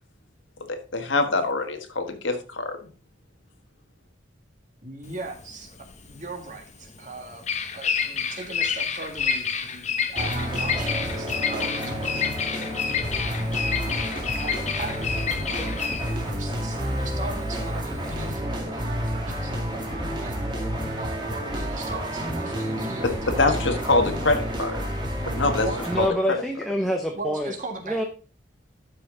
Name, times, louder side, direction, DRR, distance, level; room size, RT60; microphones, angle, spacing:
voice 1, 0.7-2.8 23.0-24.8 25.3-25.7 26.0-26.4, left 3 dB, 70° left, 6 dB, 1.5 m, -24 dB
voice 2, 4.8-5.8 6.0-7.5 7.7-12.4 12.8-13.0 13.5-24.7 25.6-25.8 27.1-28.0, right 3 dB, 40° right, 2 dB, 2.0 m, -39 dB
Bird vocalization bird call bird song, 5.1-18.3, left 6 dB, 35° left, 0.9 m, -29 dB
sound 1, 10.2-26.1, equal, 20° right, 2.0 m, -30 dB
voice 3, 25.9-27.5 27.8-28.1, equal, ahead, 2 dB, 0.8 m, -26 dB
12.0 x 5.7 x 3.9 m, 0.39 s
head